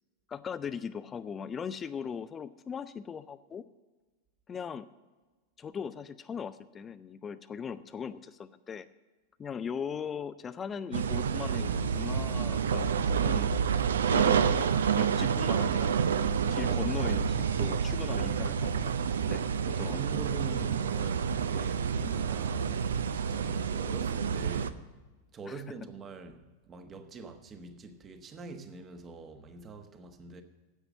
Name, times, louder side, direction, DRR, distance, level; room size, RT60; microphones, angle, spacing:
voice 1, 0.3-3.6 4.5-4.9 5.6-8.9 9.4-13.5 14.1-16.0 16.5-18.9 19.3-20.2 25.5-25.6, left 7 dB, 20° left, 0.4 m, -39 dB
sound 1, 10.9-24.7, right 7 dB, 65° right, 0.5 m, -28 dB
voice 2, 16.4-16.8 19.9-24.9 25.3-30.4, right 4 dB, 25° right, 1.2 m, -44 dB
10.0 x 8.0 x 8.7 m
figure-of-eight pair, 90°, 0 cm